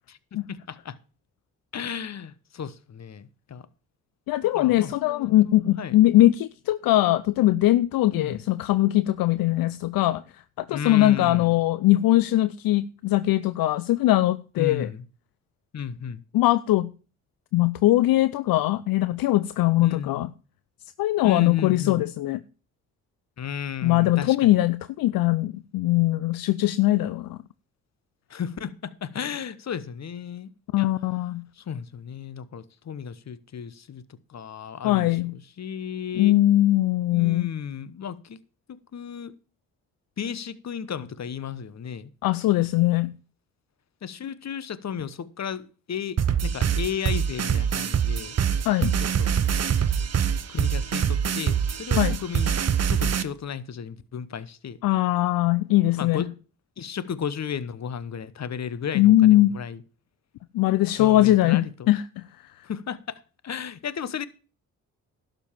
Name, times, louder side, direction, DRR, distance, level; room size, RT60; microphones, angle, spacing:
voice 1, 0.1-1.0 1.7-3.7 4.5-5.9 8.1-8.4 10.7-11.6 14.6-15.0 15.7-16.2 19.8-20.3 21.2-22.1 23.4-24.5 28.3-30.5 30.8-30.9 31.6-34.0 34.3-36.3 37.1-38.4 38.7-39.3 40.2-42.1 44.0-48.4 49.0-49.4 50.5-52.5 52.9-54.8 56.0-56.3 56.8-59.8 61.0-61.7 62.6-63.1 63.4-64.3, left 7 dB, 50° left, 1.0 m, -34 dB
voice 2, 4.3-10.2 10.6-14.9 16.3-16.9 17.5-20.3 21.0-22.4 23.8-27.4 30.7-31.4 34.8-35.3 36.2-37.5 42.2-43.1 48.7-49.0 52.0-52.2 54.8-56.3 58.9-59.5 60.5-62.2 62.6-62.7, left 15 dB, 70° left, 0.5 m, -21 dB
sound 1, 46.2-53.2, right 8 dB, 45° right, 0.9 m, -24 dB
11.5 x 5.4 x 7.2 m
supercardioid pair, 50°, 36 cm